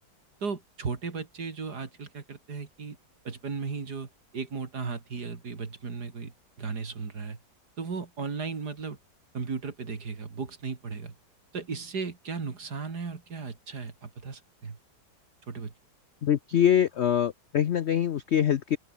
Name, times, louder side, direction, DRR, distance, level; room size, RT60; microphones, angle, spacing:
voice 1, 0.4-3.0 3.2-7.4 7.8-9.0 9.3-11.1 11.5-14.8 15.5-15.7, right 5 dB, 65° right, 3.2 m, -36 dB
voice 2, 16.2-18.8, left 9 dB, 65° left, 0.6 m, -24 dB
open air
omnidirectional pair, 1.9 m